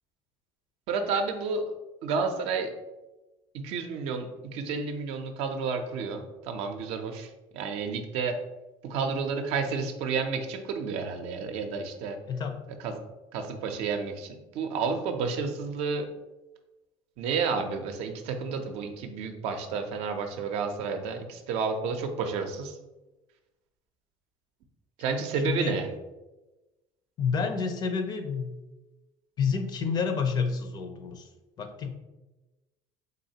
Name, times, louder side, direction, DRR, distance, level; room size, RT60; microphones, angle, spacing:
voice 1, 0.9-1.6 2.0-2.7 3.5-8.4 8.8-12.2 12.8-13.0 13.3-16.1 17.2-22.8 25.0-25.9, right 5 dB, 70° right, 6 dB, 0.5 m, -31 dB
voice 2, 12.3-12.6 25.4-25.8 27.2-28.6 29.4-31.3 31.6-31.9, left 5 dB, 40° left, 7 dB, 0.5 m, -29 dB
3.9 x 3.1 x 2.8 m, 1.1 s
cardioid pair, 125°, 11 cm